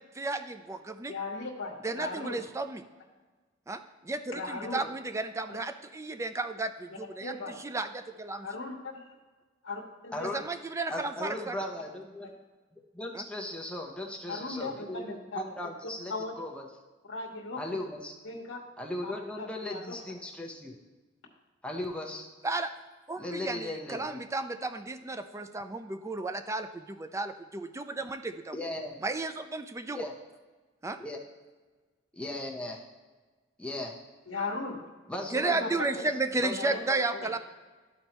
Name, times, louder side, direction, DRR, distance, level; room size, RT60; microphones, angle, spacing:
voice 1, 0.0-1.1 1.8-2.8 3.7-8.5 10.3-11.6 13.1-13.2 22.4-22.7 23.1-28.6 29.0-30.1 30.8-31.0 35.3-37.4, right 3 dB, 15° right, 9 dB, 0.4 m, -33 dB
voice 2, 1.1-2.4 4.3-4.8 7.2-7.6 8.4-9.0 9.6-10.3 10.9-11.3 14.3-15.4 16.1-16.3 17.1-17.8 18.2-18.6 19.0-19.1 19.4-20.0 34.3-34.8 35.5-35.7 36.6-36.8 37.1-37.3, left 3 dB, 80° left, -3 dB, 1.1 m, -37 dB
voice 3, 10.1-10.4 10.9-12.3 12.9-16.6 17.6-18.1 18.8-20.8 21.6-22.3 23.2-24.2 28.5-29.0 29.9-30.1 31.0-31.2 32.1-32.8 33.6-33.9 35.1-36.1 36.4-37.0, left 1 dB, 5° left, 0 dB, 0.9 m, -37 dB
13.0 x 4.4 x 3.0 m, 1.3 s
head